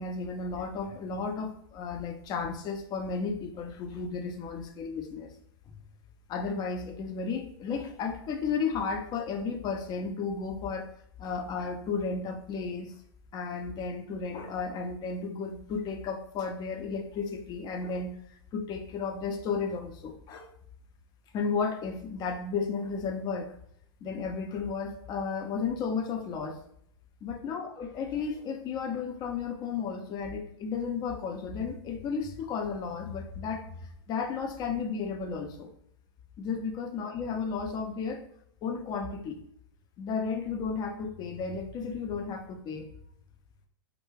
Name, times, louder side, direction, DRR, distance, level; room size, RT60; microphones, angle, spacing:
voice 1, 0.0-5.3 6.3-10.9 11.2-13.0 13.3-20.5 21.3-23.5 24.0-26.6 27.2-35.7 36.4-38.2 38.6-39.4 40.0-42.9, left 5 dB, 30° left, 4 dB, 0.5 m, -33 dB
2.3 x 2.1 x 3.2 m, 0.69 s
hypercardioid pair, 115°, 13 cm